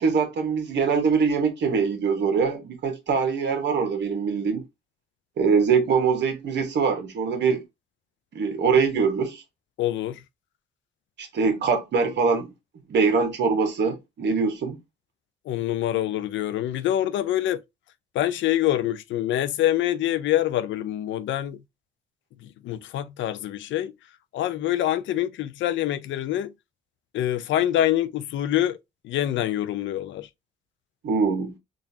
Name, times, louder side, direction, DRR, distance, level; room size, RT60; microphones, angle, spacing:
voice 1, 0.0-4.6 5.4-7.6 8.3-9.4 11.2-12.5 12.9-14.8 31.0-31.5, right 5 dB, 60° right, 1.1 m, -23 dB
voice 2, 9.8-10.2 15.5-17.6 18.1-21.6 22.4-23.9 24.3-26.5 27.1-28.8 29.0-30.3, left 12 dB, 70° left, 0.4 m, -25 dB
3.8 x 2.4 x 2.6 m
cardioid pair, 90°, 20 cm